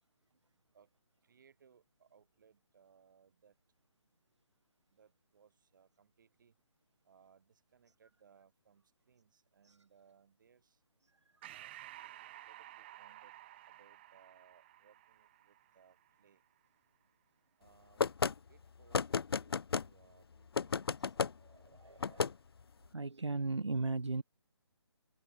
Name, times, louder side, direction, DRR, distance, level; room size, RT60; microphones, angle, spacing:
voice 1, 1.2-3.5 4.9-6.5 7.0-10.8 11.5-13.3 13.7-16.4 17.6-18.0 18.5-19.1 19.3-20.9, right 7 dB, 45° right, 4.5 m, -67 dB
Breathing, 11.4-16.3, right 15 dB, 25° right, 1.0 m, -53 dB
sound 1, 18.0-18.3 18.9-19.9 20.6-21.3 22.0-22.3, left 5 dB, 60° left, 0.5 m, -32 dB
voice 2, 21.4-22.3 22.9-24.2, right 3 dB, 85° right, 0.6 m, -37 dB
figure-of-eight pair, 145°, 15 cm